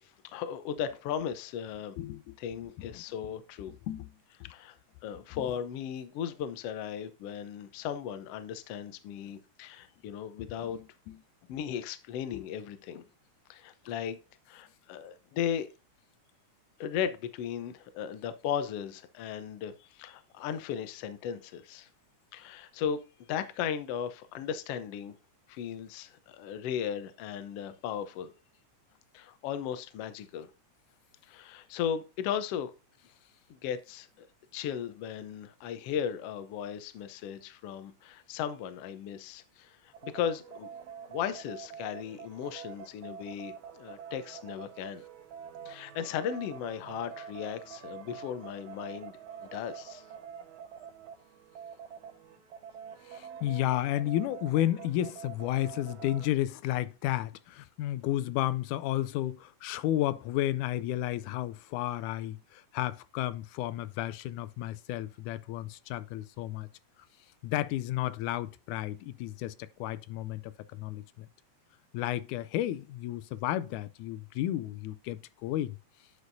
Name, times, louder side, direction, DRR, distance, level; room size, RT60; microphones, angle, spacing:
voice 1, 0.0-2.0 2.4-3.7 4.5-4.8 5.0-10.8 11.5-13.0 13.5-14.2 14.5-15.7 16.8-21.9 22.3-23.0 23.3-25.2 25.5-28.3 29.1-30.5 31.2-32.7 33.5-34.3 34.5-40.7 41.1-45.0 45.6-49.1 49.4-50.0, left 8 dB, 70° left, 1.5 m, -36 dB
voice 2, 2.0-2.4 2.9-3.3 3.7-4.1 5.4-5.5 10.4-11.2 12.3-12.4 53.1-66.7 67.4-71.3 71.9-75.8, left 13 dB, 85° left, 2.1 m, -32 dB
sound 1, 39.9-56.3, right 7 dB, 75° right, 2.6 m, -46 dB
9.7 x 6.3 x 2.6 m
omnidirectional pair, 3.5 m